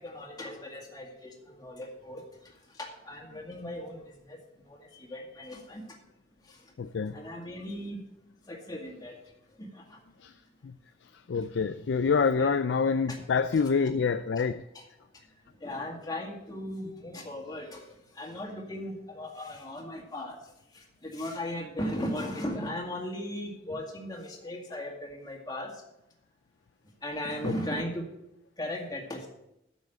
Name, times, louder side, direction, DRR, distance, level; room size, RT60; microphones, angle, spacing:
voice 1, 0.0-6.0 6.4-6.7 7.1-8.0 8.5-10.0 12.4-12.5 13.1-13.2 13.9-14.0 14.3-14.4 14.7-14.8 15.4-25.8 27.0-28.1 28.6-29.3, left 1 dB, 20° left, 0 dB, 2.0 m, -38 dB
voice 2, 6.8-7.2 10.2-10.3 10.6-10.7 11.0-14.6 27.4-27.5, left 5 dB, 70° left, 10 dB, 0.4 m, -27 dB
9.5 x 7.1 x 6.4 m, 0.85 s
head